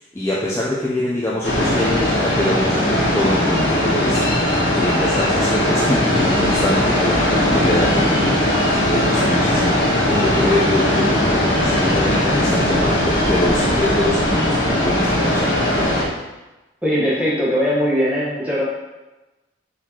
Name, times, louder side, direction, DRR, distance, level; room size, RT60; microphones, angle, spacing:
voice 1, 0.1-14.5 14.8-15.9, left 1 dB, 15° left, -6 dB, 0.4 m, -24 dB
sound 1, 1.4-16.0, left 1 dB, 90° left, 1.3 m, -19 dB
voice 2, 16.8-18.6, equal, 10° right, -7 dB, 1.1 m, -20 dB
4.5 x 4.1 x 2.9 m, 1.1 s
head